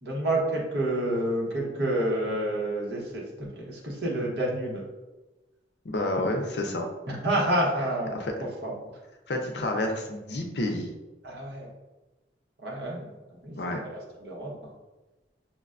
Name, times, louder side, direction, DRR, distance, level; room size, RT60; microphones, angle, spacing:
voice 1, 0.0-4.8 7.1-8.7 11.2-11.7 12.6-13.6 13.9-14.7, right 1 dB, 70° right, -3 dB, 1.0 m, -29 dB
voice 2, 5.8-6.8 8.1-8.3 9.3-10.9 13.6-13.8, left 1 dB, 65° left, 2 dB, 0.6 m, -29 dB
5.8 x 2.2 x 2.4 m, 1.1 s
head